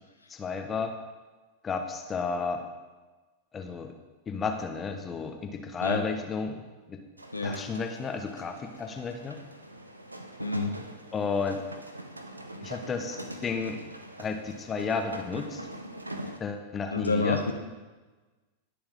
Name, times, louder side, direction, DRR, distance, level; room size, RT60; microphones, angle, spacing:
voice 1, 0.3-0.9 1.6-2.7 3.5-3.9 4.3-6.6 6.9-7.0 7.4-9.4 11.1-11.6 12.6-13.8 14.2-15.6 16.4-17.4, left 5 dB, 20° left, 5 dB, 1.4 m, -32 dB
sound 1, 7.2-16.4, right 1 dB, 85° right, 0.9 m, -43 dB
voice 2, 7.3-7.6 10.4-10.8 16.9-17.5, left 3 dB, 80° left, 4 dB, 1.1 m, -28 dB
20.0 x 6.9 x 3.9 m, 1.2 s
figure-of-eight pair, 90°, 0 cm